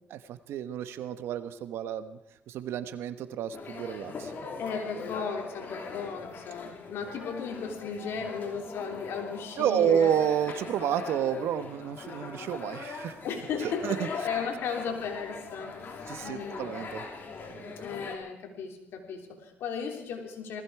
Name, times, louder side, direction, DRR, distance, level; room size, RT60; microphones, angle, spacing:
voice 1, 0.1-2.2 2.5-4.3 6.6-6.7 9.6-13.2 13.6-14.1 16.1-17.0 17.5-17.7, right 9 dB, 80° right, 12 dB, 1.1 m, -30 dB
sound 1, 3.5-18.2, left 4 dB, 55° left, 3.0 m, -41 dB
voice 2, 4.6-10.3 13.2-16.8 17.8-20.6, left 6 dB, 75° left, 3 dB, 3.3 m, -36 dB
19.5 x 15.0 x 4.8 m, 0.83 s
cardioid pair, 85°, 4 cm